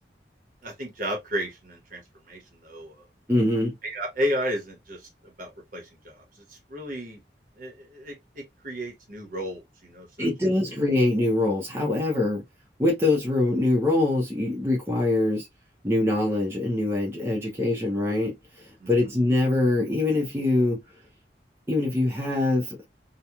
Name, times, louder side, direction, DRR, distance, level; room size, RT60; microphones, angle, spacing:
voice 1, 0.6-2.0 2.3-2.9 3.8-6.2 6.5-7.2 7.6-10.3 18.8-19.1, equal, 50° right, 1.0 m, -33 dB
voice 2, 3.3-3.7 10.2-12.4 12.8-15.5 15.8-20.8 21.7-22.8, left 2 dB, 15° right, 0.7 m, -24 dB
2.9 x 2.2 x 2.3 m
head